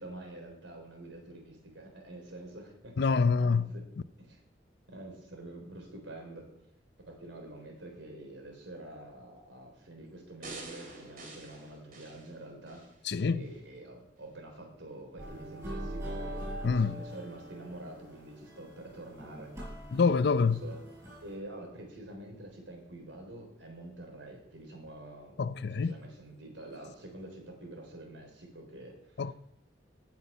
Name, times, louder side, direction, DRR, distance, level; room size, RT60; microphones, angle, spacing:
voice 1, 0.0-3.0 3.4-3.9 4.2-4.4 4.9-6.5 7.1-12.8 13.3-20.0 20.3-20.8 21.2-29.3, right 1 dB, 85° right, 3.8 m, -47 dB
voice 2, 3.0-3.7 13.1-13.5 16.6-17.0 19.9-20.6 25.4-26.0 29.2-29.3, left 4 dB, 65° left, 0.5 m, -26 dB
sound 1, 10.4-12.9 13.4-13.5, right 3 dB, 50° right, 2.8 m, -46 dB
sound 2, 15.2-21.3, right 1 dB, 20° right, 5.9 m, -42 dB
18.0 x 6.1 x 5.5 m
head